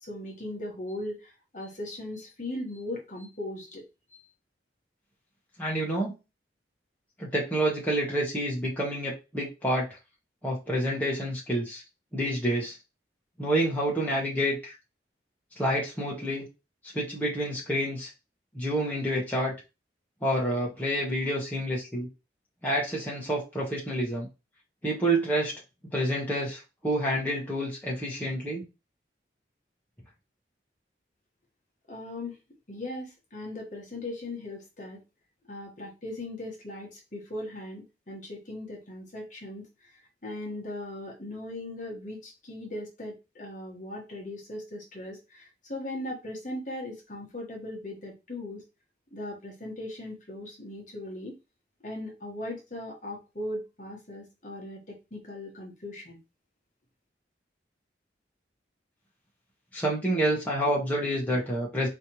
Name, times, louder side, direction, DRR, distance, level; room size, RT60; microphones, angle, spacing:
voice 1, 0.0-3.8 4.1-4.2 31.9-32.3 32.7-35.0 35.5-39.7 40.2-48.6 49.1-51.3 51.8-56.2, left 1 dB, 45° left, -1 dB, 1.3 m, -38 dB
voice 2, 5.6-6.1 7.2-9.9 10.4-11.8 12.1-12.7 13.4-14.8 15.6-16.4 16.9-18.1 18.5-19.5 20.2-22.1 22.6-24.3 24.8-25.5 25.9-28.6 59.7-61.9, right 1 dB, 10° left, -5 dB, 1.3 m, -28 dB
4.2 x 3.3 x 3.0 m, 0.26 s
head